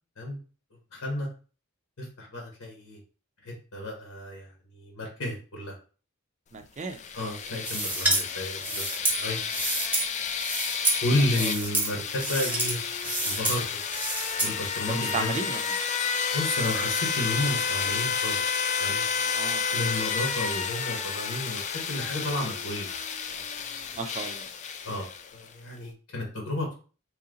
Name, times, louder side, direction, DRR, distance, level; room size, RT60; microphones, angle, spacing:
voice 1, 0.9-1.3 2.0-3.0 3.4-5.8 7.1-8.9 9.2-9.4 11.0-12.8 13.2-13.8 14.4-15.3 16.3-18.4 18.8-19.0 19.7-22.9 23.3-23.7 24.8-26.7, left 1 dB, 70° left, 1.2 m, -32 dB
voice 2, 6.5-7.0 11.4-11.5 14.9-15.8 19.2-19.6 24.0-24.5, right 3 dB, 30° right, 0.5 m, -34 dB
sound 1, 6.8-25.5, left 6 dB, 35° left, 0.3 m, -31 dB
sound 2, 7.6-8.2 8.6-10.1 10.4-11.0 11.3-11.9 12.2-12.7 13.0-13.6 13.9-14.5, right 2 dB, 10° right, 0.8 m, -28 dB
3.1 x 2.8 x 3.8 m
head